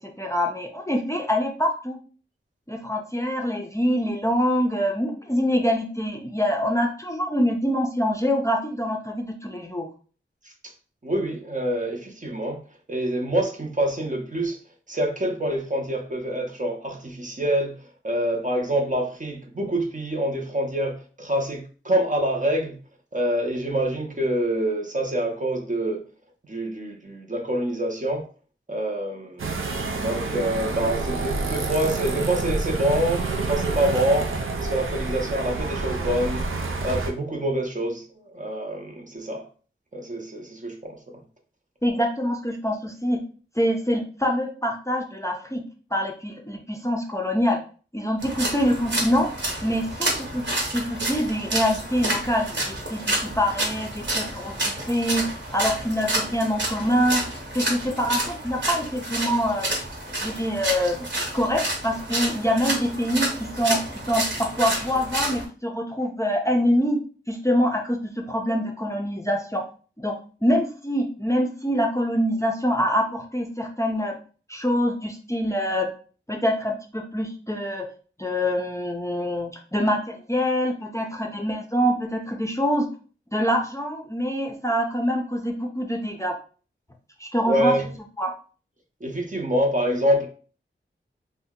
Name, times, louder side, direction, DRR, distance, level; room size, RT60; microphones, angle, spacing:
voice 1, 0.0-2.0 2.7-9.9 41.8-43.2 43.6-45.6 45.9-47.6 47.9-49.3 49.6-50.4 50.7-55.2 55.5-57.2 57.5-59.7 60.2-63.8 64.1-67.0 67.3-68.0 68.3-69.6 70.0-70.1 70.4-74.2 74.5-75.9 76.3-77.9 78.2-82.9 83.3-86.4 87.2-87.8 88.2-88.3, equal, 15° left, 0.5 m, -25 dB
voice 2, 11.0-12.6 12.9-14.6 14.9-17.8 18.0-22.8 23.1-26.0 26.5-28.3 28.7-34.3 34.6-36.4 36.8-39.5 39.9-41.0 87.5-87.9 89.0-90.3, right 1 dB, 40° right, 0.7 m, -26 dB
sound 1, 29.4-37.1, right 3 dB, 80° right, 0.5 m, -28 dB
sound 2, 48.2-65.4, right 1 dB, 60° right, 1.0 m, -29 dB
2.7 x 2.1 x 3.6 m
wide cardioid pair, 60°, 21 cm